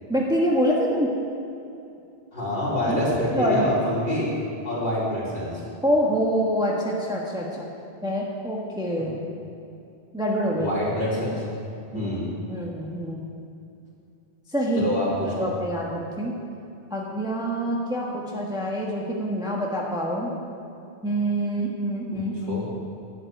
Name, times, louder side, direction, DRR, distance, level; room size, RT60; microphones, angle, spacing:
voice 1, 0.1-1.1 2.9-3.7 5.8-7.7 8.0-9.2 10.1-10.7 11.9-12.2 12.5-13.3 14.5-14.9 15.2-16.4 16.9-20.3 21.0-22.6, equal, 5° right, -3 dB, 1.3 m, -26 dB
voice 2, 2.3-4.3 4.6-5.6 8.9-9.0 10.5-11.4 11.9-12.2 14.8-15.1 15.4-15.5 22.1-22.7, left 1 dB, 50° left, -7 dB, 4.1 m, -26 dB
11.5 x 7.5 x 9.4 m, 2.7 s
omnidirectional pair, 1.1 m